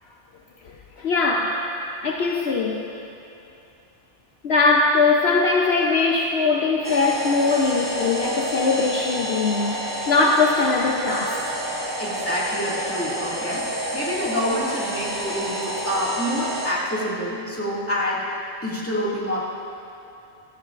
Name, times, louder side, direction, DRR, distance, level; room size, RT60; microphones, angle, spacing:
voice 1, 1.0-1.6 2.0-2.8 4.4-11.6, left 3 dB, 65° left, 0 dB, 0.9 m, -21 dB
sound 1, 6.8-16.7, right 1 dB, 15° right, 1.6 m, -29 dB
voice 2, 12.0-18.3 18.6-19.4, equal, 10° left, -7 dB, 2.1 m, -27 dB
16.5 x 13.5 x 2.5 m, 2.8 s
omnidirectional pair, 1.2 m